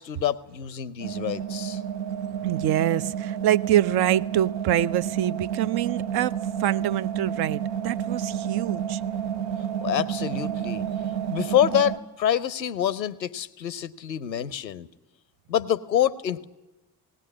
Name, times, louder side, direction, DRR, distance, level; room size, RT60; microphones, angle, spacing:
voice 1, 0.0-1.8 9.8-10.8 11.3-14.9 15.5-16.4, left 10 dB, 90° left, 0.6 m, -26 dB
sound 1, 1.0-12.0, right 9 dB, 75° right, 1.0 m, -30 dB
voice 2, 2.4-9.0, right 12 dB, 50° right, 0.7 m, -25 dB
19.0 x 18.5 x 9.7 m
figure-of-eight pair, 45°, 50 cm